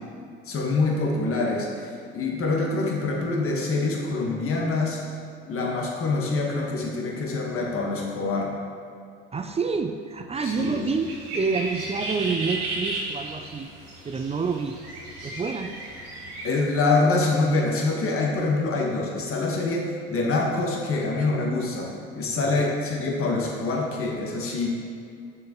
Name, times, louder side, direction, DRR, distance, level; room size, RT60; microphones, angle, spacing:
voice 1, 0.4-5.0 5.5-8.5 10.4-10.8 16.4-24.7, left 3 dB, 50° left, -1 dB, 1.5 m, -25 dB
voice 2, 9.3-13.7 14.0-14.8 15.2-15.7 22.4-22.7, right 4 dB, 20° right, 5 dB, 0.4 m, -28 dB
sound 1, 10.3-16.5, right 2 dB, 85° right, 1.5 m, -35 dB
6.9 x 6.4 x 3.0 m, 2.4 s
hypercardioid pair, 70°, 29 cm